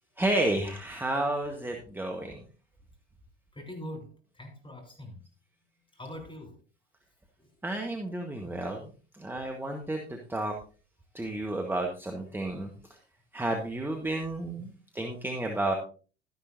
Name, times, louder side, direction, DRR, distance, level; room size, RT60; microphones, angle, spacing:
voice 1, 0.2-2.4 7.6-10.5 11.1-13.0 13.3-15.7, right 1 dB, 5° right, 1.4 m, -31 dB
voice 2, 3.5-5.2 5.9-6.6 7.4-7.5, left 1 dB, 15° left, 3.7 m, -43 dB
12.5 x 10.5 x 2.7 m
figure-of-eight pair, 75°, 35 cm